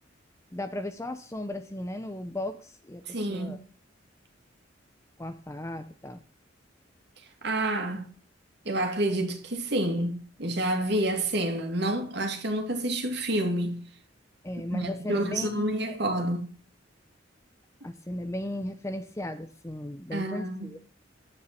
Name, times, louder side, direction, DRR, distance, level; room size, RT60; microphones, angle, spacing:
voice 1, 0.5-3.6 5.2-6.2 14.4-16.0 17.8-20.8, left 1 dB, 15° left, 0.7 m, -36 dB
voice 2, 3.1-3.6 7.4-8.1 8.6-13.8 14.7-16.5 20.1-20.7, right 1 dB, 60° right, 2.6 m, -29 dB
9.7 x 9.4 x 4.4 m
head